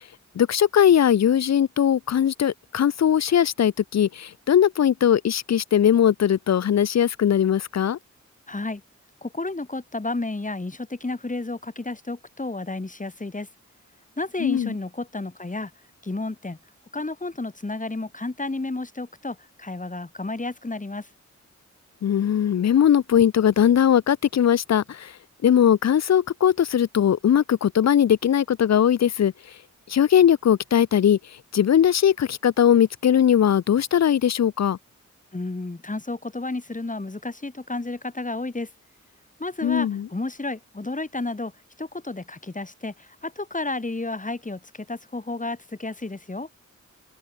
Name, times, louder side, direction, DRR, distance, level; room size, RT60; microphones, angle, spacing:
voice 1, 0.4-8.0 14.4-14.8 22.0-25.1 25.4-29.3 29.9-31.2 31.5-34.8 39.6-40.1, left 9 dB, 60° left, 0.5 m, -20 dB
voice 2, 8.5-8.8 9.2-13.5 14.2-15.7 16.0-16.6 16.9-21.1 35.3-38.7 39.4-41.5 41.8-44.6 44.9-46.5, left 2 dB, 25° left, 2.4 m, -31 dB
open air
cardioid pair, 60°, 30 cm